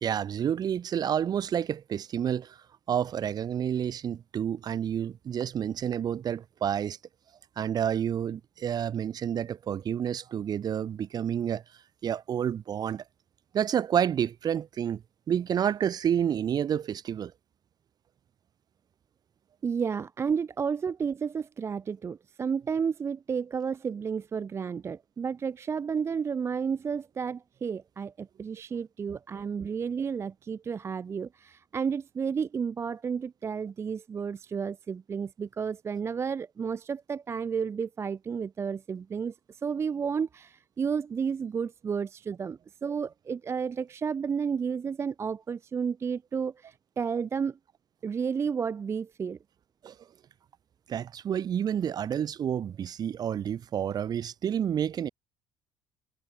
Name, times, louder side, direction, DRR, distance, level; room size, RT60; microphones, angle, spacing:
voice 1, 0.0-2.6 2.9-7.0 7.6-11.6 12.0-13.0 13.5-15.0 15.3-17.3 49.8-49.9 50.9-55.1, right 9 dB, 45° right, 0.8 m, -29 dB
voice 2, 19.6-47.6 48.0-49.4, right 6 dB, 30° right, 0.4 m, -32 dB
cardioid pair, 105°, 10 cm